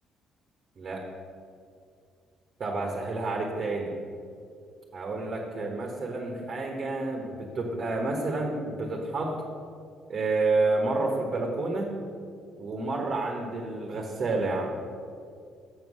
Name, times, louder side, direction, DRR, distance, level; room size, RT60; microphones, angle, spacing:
voice 1, 2.6-3.9 4.9-9.4 10.1-11.9 12.6-14.7, right 3 dB, 50° right, 0 dB, 1.3 m, -29 dB
7.2 x 5.5 x 6.3 m, 2.3 s
cardioid pair, 80°, 0 cm